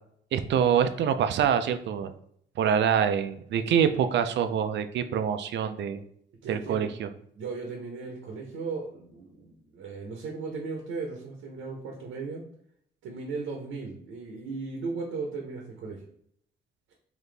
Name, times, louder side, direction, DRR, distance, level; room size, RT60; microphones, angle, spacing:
voice 1, 0.3-2.1 2.6-6.0 6.5-7.1, right 8 dB, 65° right, 10 dB, 0.5 m, -25 dB
voice 2, 6.4-6.9 7.3-12.4 13.0-16.0, right 4 dB, 90° right, 1 dB, 0.9 m, -36 dB
4.0 x 2.8 x 3.3 m, 0.67 s
cardioid pair, 90°, 20 cm